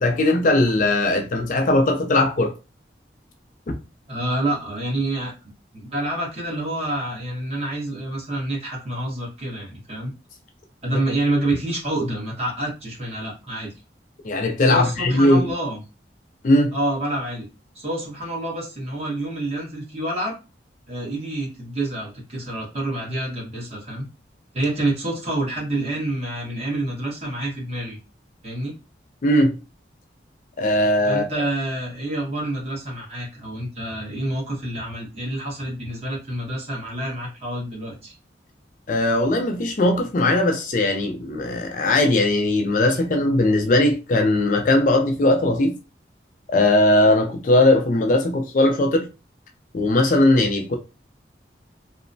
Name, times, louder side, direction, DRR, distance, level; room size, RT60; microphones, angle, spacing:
voice 1, 0.0-2.5 3.7-3.8 14.2-15.4 16.4-16.7 29.2-29.6 30.6-31.4 38.9-45.8 46.5-49.1 49.7-50.8, left 1 dB, 45° left, 0.4 m, -19 dB
voice 2, 4.1-10.1 10.8-13.7 14.7-15.8 16.7-17.5 17.7-20.4 20.9-24.1 24.5-28.0 28.4-28.7 31.1-38.1, right 1 dB, 35° right, 1.1 m, -28 dB
3.0 x 2.0 x 2.5 m
head